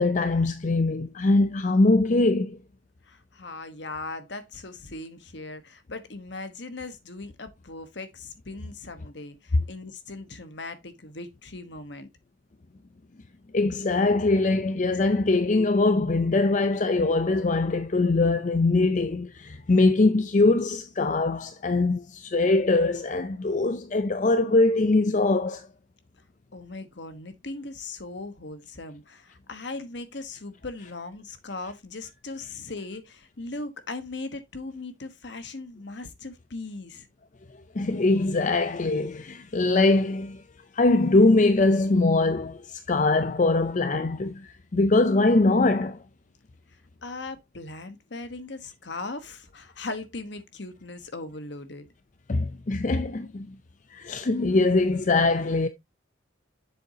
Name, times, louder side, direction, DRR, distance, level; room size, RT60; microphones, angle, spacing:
voice 1, 0.0-2.6 13.5-25.7 37.7-40.4 40.7-46.0 52.3-53.6 53.9-55.7, left 2 dB, 40° left, 0.5 m, -22 dB
voice 2, 3.0-12.1 26.5-37.1 47.0-51.9, left 3 dB, 60° left, 1.2 m, -39 dB
7.9 x 7.0 x 2.8 m
head